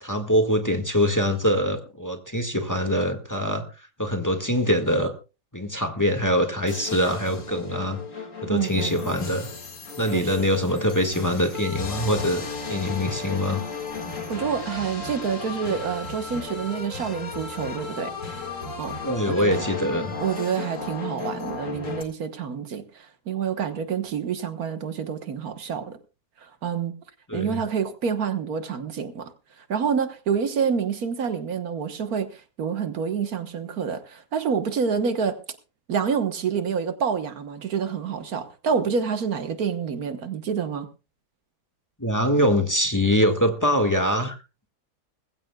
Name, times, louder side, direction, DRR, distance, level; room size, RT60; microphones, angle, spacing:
voice 1, 0.0-5.1 5.5-9.5 10.0-13.6 19.0-20.2 27.3-27.6 42.0-44.4, equal, 10° left, 1.7 m, -24 dB
sound 1, 6.7-22.0, left 4 dB, 55° left, 2.4 m, -35 dB
voice 2, 8.5-9.1 10.1-10.5 14.3-18.1 18.8-19.0 19.3-19.6 20.2-26.0 26.4-26.9 27.3-29.3 29.6-35.4 35.9-40.9, right 6 dB, 75° right, 1.7 m, -28 dB
21.0 x 15.5 x 2.3 m
omnidirectional pair, 1.6 m